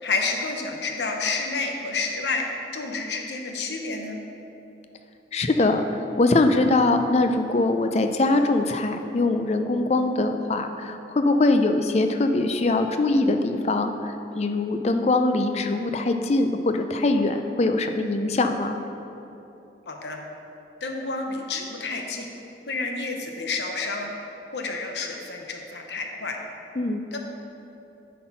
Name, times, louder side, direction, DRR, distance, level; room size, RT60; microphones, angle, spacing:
voice 1, 0.0-2.4 2.7-4.2 19.9-20.2 20.8-22.3 22.7-24.1 24.5-26.4 27.1-27.2, left 3 dB, 70° left, 2 dB, 0.9 m, -29 dB
voice 2, 5.3-18.8 26.8-27.0, left 2 dB, 35° left, 7 dB, 0.4 m, -22 dB
9.3 x 4.2 x 5.7 m, 2.9 s
head